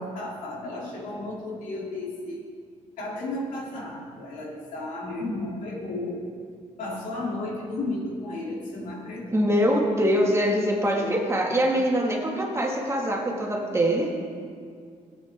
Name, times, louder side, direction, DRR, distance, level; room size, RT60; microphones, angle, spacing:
voice 1, 0.1-2.4 3.0-6.2 6.8-9.4 10.8-11.3, left 2 dB, 85° left, -3 dB, 3.0 m, -33 dB
voice 2, 9.3-14.1, equal, 20° right, -1 dB, 2.0 m, -23 dB
17.5 x 9.3 x 3.6 m, 2.2 s
cardioid pair, 100°, 13 cm